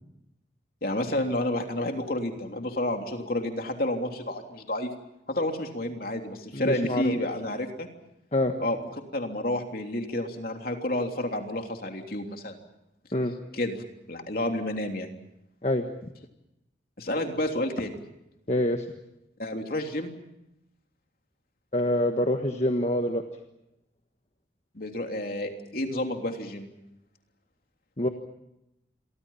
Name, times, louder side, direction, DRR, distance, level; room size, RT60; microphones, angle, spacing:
voice 1, 0.8-4.9 5.3-7.9 8.6-12.6 13.5-15.1 17.0-17.9 19.4-20.1 24.7-26.7, left 1 dB, 50° left, 4 dB, 3.3 m, -30 dB
voice 2, 6.5-7.1 8.3-8.5 13.1-13.3 15.6-15.9 18.5-18.8 21.7-23.2 28.0-28.1, left 1 dB, 35° left, 5 dB, 1.5 m, -25 dB
29.0 x 24.0 x 5.7 m, 0.86 s
head